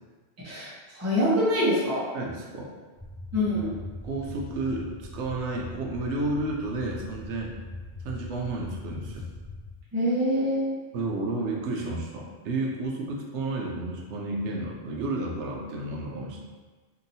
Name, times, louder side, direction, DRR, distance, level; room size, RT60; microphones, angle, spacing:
voice 1, 0.4-2.0 3.3-3.7 9.9-10.9, equal, 15° right, -8 dB, 0.7 m, -25 dB
voice 2, 2.1-2.7 4.0-7.5 8.0-9.3 10.9-16.5, right 2 dB, 85° right, -1 dB, 0.9 m, -31 dB
sound 1, 3.0-9.7, left 2 dB, 5° left, 1.1 m, -41 dB
2.9 x 2.8 x 2.7 m, 1.3 s
omnidirectional pair, 1.2 m